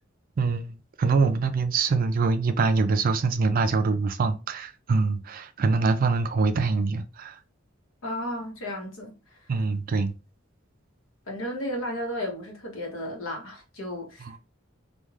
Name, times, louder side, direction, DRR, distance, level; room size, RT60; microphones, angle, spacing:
voice 1, 0.4-7.4 9.5-10.1 14.2-14.4, right 4 dB, 45° right, 0.4 m, -24 dB
voice 2, 8.0-9.5 11.3-14.3, left 1 dB, 90° left, 0.9 m, -34 dB
3.1 x 2.3 x 2.3 m
head